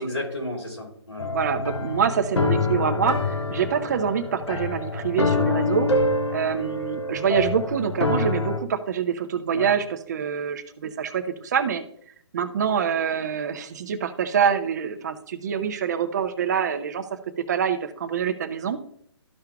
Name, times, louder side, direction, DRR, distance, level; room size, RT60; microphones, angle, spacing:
voice 1, 0.0-1.3 9.5-9.7, left 1 dB, 90° left, -1 dB, 3.1 m, -32 dB
sound 1, 1.2-8.6, left 3 dB, 75° left, 0.9 m, -26 dB
voice 2, 1.3-5.9 6.3-11.8 12.3-17.2 17.5-18.8, right 7 dB, 40° right, 8 dB, 0.7 m, -25 dB
13.5 x 5.6 x 2.3 m, 0.66 s
figure-of-eight pair, 135°, 15 cm